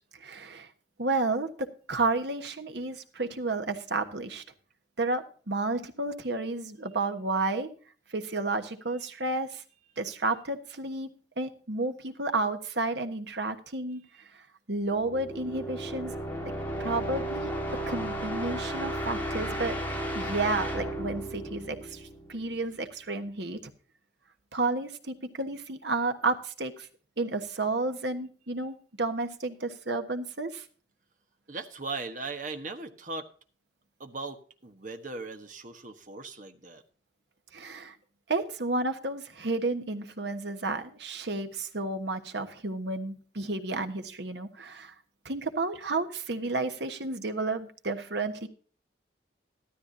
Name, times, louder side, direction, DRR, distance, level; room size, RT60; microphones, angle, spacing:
voice 1, 0.2-0.7 1.0-4.4 5.0-7.7 8.1-9.6 10.0-11.1 11.4-14.4 14.7-16.1 16.8-17.5 17.9-19.8 20.1-23.7 24.5-26.9 27.2-30.6 37.5-38.0 38.3-44.9 45.2-48.5, right 3 dB, 65° right, 7 dB, 1.3 m, -31 dB
sound 1, 14.9-22.6, right 1 dB, 10° left, 2.0 m, -34 dB
voice 2, 31.5-33.3 34.0-36.8, right 3 dB, 45° right, 6 dB, 1.2 m, -38 dB
13.5 x 13.0 x 2.7 m, 0.40 s
head